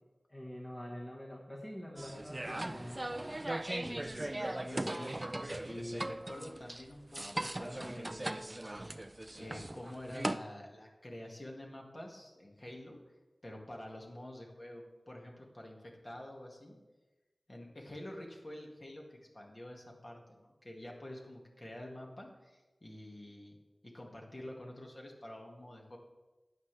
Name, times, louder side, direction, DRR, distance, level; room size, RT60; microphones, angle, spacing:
voice 1, 0.3-3.0, equal, 20° left, -3 dB, 1.6 m, -45 dB
sound 1, 2.0-10.4, right 1 dB, 25° right, 0.5 m, -39 dB
voice 2, 3.6-8.6 9.3-13.0 13.4-16.8 17.5-23.6 23.8-26.0, left 1 dB, 40° left, 0 dB, 2.1 m, -48 dB
12.5 x 9.4 x 3.4 m, 1.1 s
wide cardioid pair, 80°, 0 cm